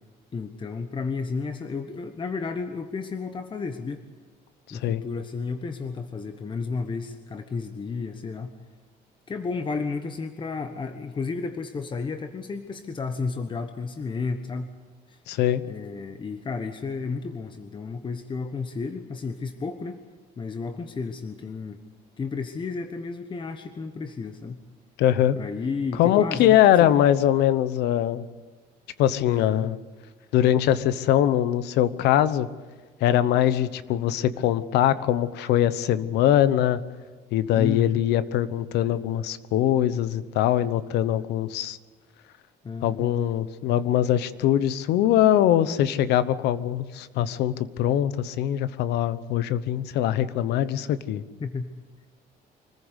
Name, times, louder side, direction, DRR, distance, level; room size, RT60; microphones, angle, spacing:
voice 1, 0.3-4.0 4.7-8.5 9.3-14.8 15.1-15.2 15.6-20.0 20.4-21.8 22.2-24.6 25.3-26.9 29.3-29.7 37.6-38.0 42.6-43.1 51.4-51.7, left 4 dB, 30° left, 8 dB, 1.2 m, -32 dB
voice 2, 4.7-5.0 15.3-15.6 25.0-25.4 26.0-28.2 29.0-29.8 30.3-32.5 33.0-36.8 37.3-41.8 42.8-51.2, left 11 dB, 85° left, 15 dB, 1.0 m, -22 dB
25.5 x 15.0 x 8.2 m, 1.4 s
cardioid pair, 110°, 17 cm